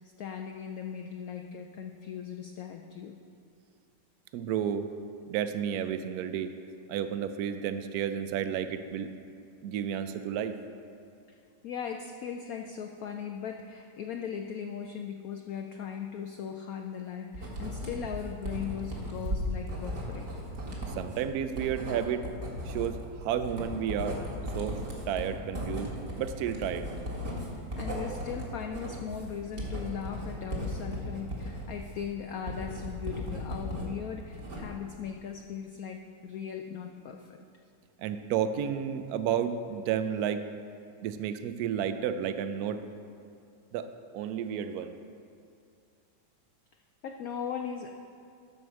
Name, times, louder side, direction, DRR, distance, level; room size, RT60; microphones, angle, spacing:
voice 1, 0.2-3.1 11.6-20.3 27.4-37.4 47.0-47.9, left 7 dB, 85° left, 4 dB, 0.7 m, -38 dB
voice 2, 4.3-4.9 5.3-6.5 6.9-9.1 9.6-10.6 21.0-22.3 22.7-24.2 24.5-24.8 25.1-25.9 26.2-26.9 38.0-40.4 41.0-42.8 43.7-43.9 44.1-44.9, right 8 dB, 80° right, 10 dB, 0.8 m, -31 dB
Writing, 17.3-33.9 34.2-34.9, equal, 45° right, 1.9 m, -37 dB
12.5 x 4.8 x 6.3 m, 2.4 s
omnidirectional pair, 2.1 m